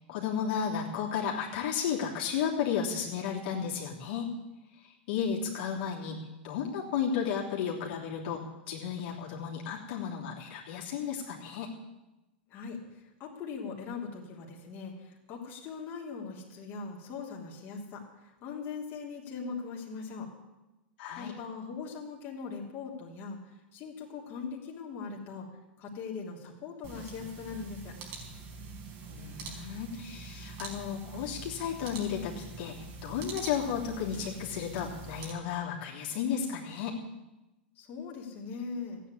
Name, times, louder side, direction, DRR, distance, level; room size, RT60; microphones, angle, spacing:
voice 1, 0.1-4.3 5.1-6.2 6.4-8.4 8.7-11.7 21.0-21.3 29.1-37.0, left 7 dB, 60° left, -3 dB, 3.1 m, -33 dB
voice 2, 13.2-18.1 18.4-20.3 21.2-23.4 23.7-25.5 25.8-27.9 37.8-39.0, left 5 dB, 40° left, -2 dB, 3.2 m, -40 dB
sound 1, 26.8-35.3, right 4 dB, 50° right, 4.7 m, -44 dB
14.5 x 9.2 x 8.4 m, 1.0 s
hypercardioid pair, 105°, 6 cm